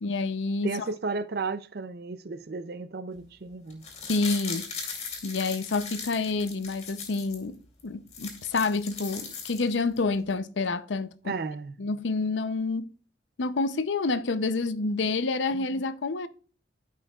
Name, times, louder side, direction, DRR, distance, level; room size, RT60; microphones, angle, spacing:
voice 1, 0.0-0.8 4.1-4.7 5.2-11.1 11.8-12.9 13.4-16.3, left 3 dB, 85° left, 0.6 m, -28 dB
voice 2, 0.6-3.9 11.2-11.8 15.5-15.7, right 4 dB, 55° right, 0.5 m, -34 dB
sound 1, 3.7-7.4 7.8-7.9 8.1-10.0 10.3-10.4, left 5 dB, 35° left, 2.4 m, -38 dB
13.5 x 5.7 x 2.4 m
head